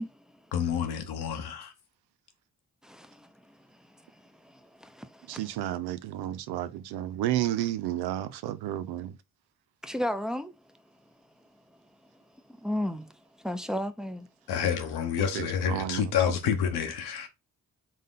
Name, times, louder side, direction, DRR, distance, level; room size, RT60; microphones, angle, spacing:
voice 1, 0.0-0.4 2.8-5.5 9.8-10.8 11.7-11.8 12.5-14.3, left 1 dB, ahead, 0.7 m, -35 dB
voice 2, 0.5-1.7 14.5-17.3, left 8 dB, 80° left, 1.0 m, -28 dB
voice 3, 5.3-9.1 15.2-16.4, right 12 dB, 80° right, 0.5 m, -32 dB
3.8 x 3.7 x 3.6 m
hypercardioid pair, 40°, 38 cm